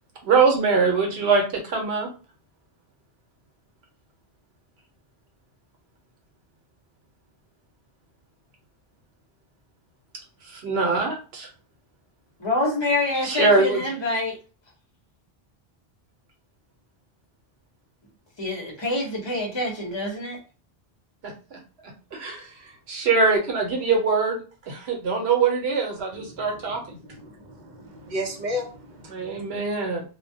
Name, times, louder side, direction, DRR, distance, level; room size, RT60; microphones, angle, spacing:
voice 1, 0.2-2.1 10.5-11.5 13.2-13.8 21.2-21.6 22.1-22.5 22.9-24.4 24.7-26.8 29.1-30.0, right 4 dB, 80° right, 1.0 m, -23 dB
voice 2, 12.4-14.4 18.4-20.4, left 2 dB, 30° left, 0.7 m, -26 dB
voice 3, 27.0-29.6, left 1 dB, 55° right, 0.6 m, -34 dB
2.2 x 2.1 x 2.6 m
omnidirectional pair, 1.0 m